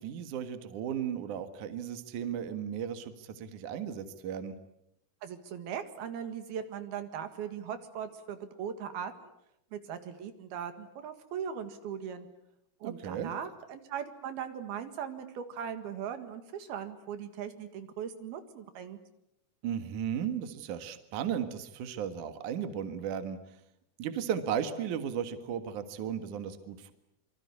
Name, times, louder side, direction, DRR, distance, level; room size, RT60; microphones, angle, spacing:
voice 1, 0.0-4.5 12.8-13.3 19.6-23.4 24.0-26.9, right 8 dB, 60° right, 9 dB, 2.9 m, -35 dB
voice 2, 5.2-9.3 9.7-12.3 12.8-19.0, right 8 dB, 80° right, 9 dB, 3.8 m, -39 dB
27.0 x 24.5 x 8.4 m, 0.79 s
omnidirectional pair, 4.3 m